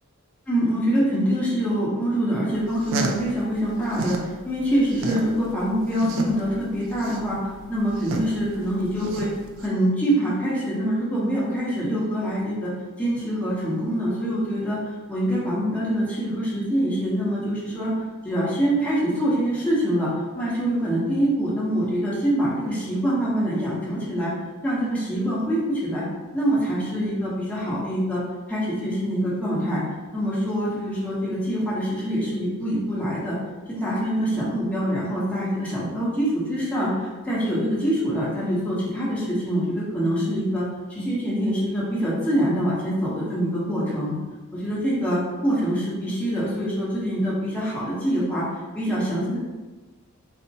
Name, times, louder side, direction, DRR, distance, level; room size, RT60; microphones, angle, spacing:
voice 1, 0.5-9.3 9.6-12.7 13.0-17.9 18.2-24.3 24.6-26.0 26.3-28.2 28.5-29.8 30.1-33.4 33.7-40.6 40.9-44.1 44.5-48.4 48.7-49.4, equal, 5° left, -8 dB, 0.9 m, -25 dB
sound 1, 2.6-4.3 4.7-9.7, right 3 dB, 60° right, 0.4 m, -31 dB
4.2 x 2.1 x 2.8 m, 1.2 s
head